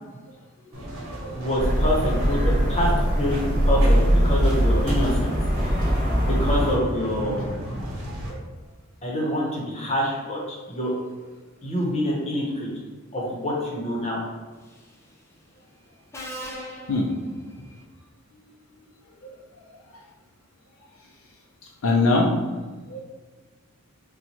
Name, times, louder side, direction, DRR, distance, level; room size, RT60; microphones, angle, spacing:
sound 1, 0.7-8.3, equal, 80° right, 1.1 m, -35 dB
voice 1, 1.3-2.9 3.2-3.4 3.7-4.0 4.2-5.3 5.6-5.7 6.2-7.5 9.0-10.9 11.6-12.7 13.1-14.2, equal, 30° left, -4 dB, 0.8 m, -26 dB
sound 2, 1.6-6.8, equal, 40° right, 1.2 m, -21 dB
Subway metro underground, 14.6-15.0 16.1-17.8, equal, 15° left, 0.4 m, -39 dB
voice 2, 21.8-22.3 22.9-23.0, left 2 dB, 70° left, -1 dB, 0.5 m, -22 dB
4.2 x 2.2 x 2.9 m, 1.3 s
head